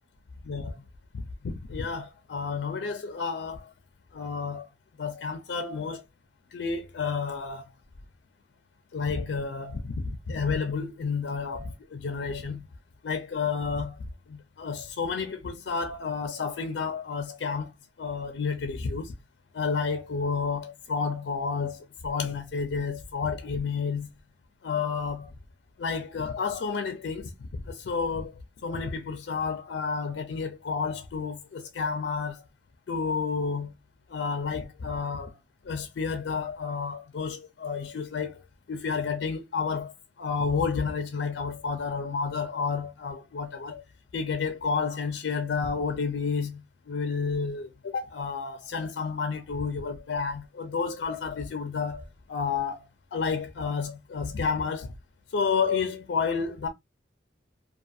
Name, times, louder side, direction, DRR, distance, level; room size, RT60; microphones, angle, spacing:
voice 1, 0.4-0.8 1.1-3.7 4.1-4.7 5.0-6.0 6.5-7.7 8.9-12.7 13.0-17.7 18.0-19.1 19.5-24.1 24.6-25.3 25.8-28.3 28.6-32.4 32.9-33.7 34.1-35.4 35.6-38.4 38.7-43.8 44.1-54.9 55.3-56.7, left 5 dB, 75° left, 0.4 m, -31 dB
2.4 x 2.4 x 2.5 m
head